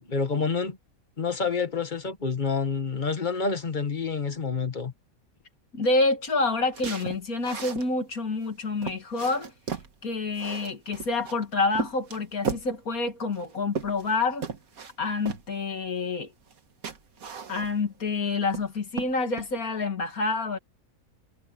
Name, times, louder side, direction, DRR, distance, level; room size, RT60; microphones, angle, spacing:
voice 1, 0.1-0.8 1.2-4.9, left 5 dB, 35° left, 1.7 m, -28 dB
voice 2, 5.7-9.5 10.0-14.5 15.0-16.3 17.5-20.6, left 3 dB, 70° left, 2.7 m, -28 dB
sound 1, 6.7-7.9 8.4-8.5 8.8-9.9 10.3-11.4 11.8-12.7 13.3-14.2 14.4-14.9 15.3-15.5 16.5-16.6 16.8-17.9 18.3-18.7 19.0-19.5, right 5 dB, 75° right, 2.0 m, -35 dB
omnidirectional pair, 1.5 m